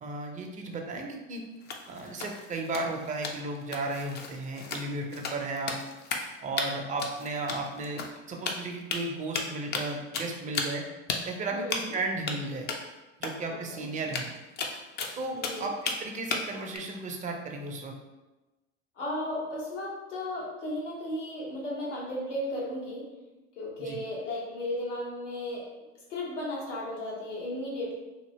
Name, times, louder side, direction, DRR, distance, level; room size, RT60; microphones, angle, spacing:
voice 1, 0.0-1.4 1.9-5.8 6.4-10.8 11.3-12.7 13.2-14.3 15.1-17.9 23.8-24.0, right 2 dB, 20° right, 2 dB, 0.5 m, -34 dB
sound 1, 1.6-6.3 6.6-6.7 7.0-8.2 8.5-9.0 9.3-9.9 10.1-10.8 11.1-11.2 11.7-11.9 12.3-12.4 12.7-12.8 13.2-13.3 13.6-13.7 14.0-16.0 16.3-16.8, left 4 dB, 30° left, 0.4 m, -34 dB
voice 2, 11.5-11.9 13.5-13.9 15.4-15.7 19.0-23.1 23.6-25.7 26.1-27.9, left 1 dB, 85° left, -4 dB, 1.0 m, -35 dB
2.8 x 2.6 x 3.0 m, 1.1 s
hypercardioid pair, 85°, 35 cm